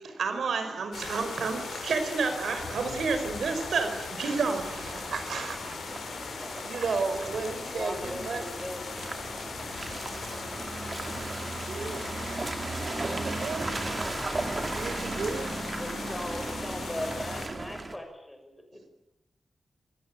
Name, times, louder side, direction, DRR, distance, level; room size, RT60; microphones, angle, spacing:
voice 1, 0.0-5.5 15.0-15.2, right 4 dB, 85° right, 8 dB, 5.0 m, -30 dB
sound 1, 0.9-17.5, left 5 dB, 90° left, 5.8 m, -39 dB
Car passing by / Engine, 4.8-18.0, right 2 dB, 25° right, 2.5 m, -36 dB
voice 2, 5.1-5.8 6.4-8.4 11.7-12.0 12.9-13.8 14.7-15.6, right 4 dB, 60° right, 9 dB, 4.8 m, -34 dB
voice 3, 7.0-9.2 14.6-15.0 15.3-19.0, left 1 dB, 5° left, 3 dB, 6.4 m, -40 dB
27.0 x 19.0 x 9.1 m, 0.87 s
wide cardioid pair, 180°, 0 cm